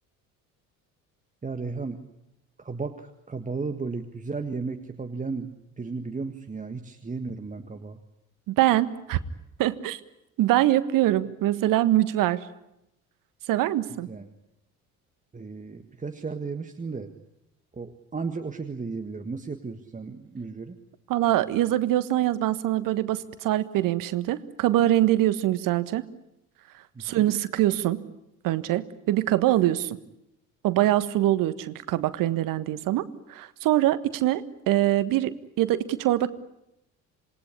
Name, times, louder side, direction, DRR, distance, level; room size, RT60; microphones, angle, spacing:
voice 1, 1.4-2.0 2.6-8.0 14.1-14.3 15.3-17.1 17.7-20.8 27.1-27.3, right 4 dB, 20° right, 7 dB, 1.7 m, -34 dB
voice 2, 8.5-9.2 9.6-10.0 10.4-12.4 13.5-14.1 21.1-26.0 27.0-28.0 28.4-30.0 30.6-33.0 33.3-36.3, right 14 dB, 50° right, 15 dB, 1.5 m, -23 dB
27.0 x 19.5 x 9.8 m, 0.84 s
figure-of-eight pair, 55°, 42 cm